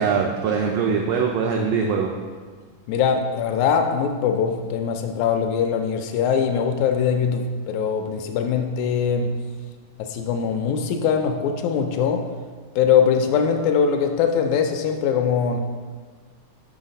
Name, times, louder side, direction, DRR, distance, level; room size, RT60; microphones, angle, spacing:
voice 1, 0.0-2.1, right 6 dB, 85° right, 1 dB, 1.4 m, -22 dB
voice 2, 2.9-9.4 10.0-12.3 12.8-15.6, left 7 dB, 80° left, 5 dB, 1.8 m, -22 dB
6.3 x 4.0 x 5.2 m, 1.5 s
omnidirectional pair, 3.4 m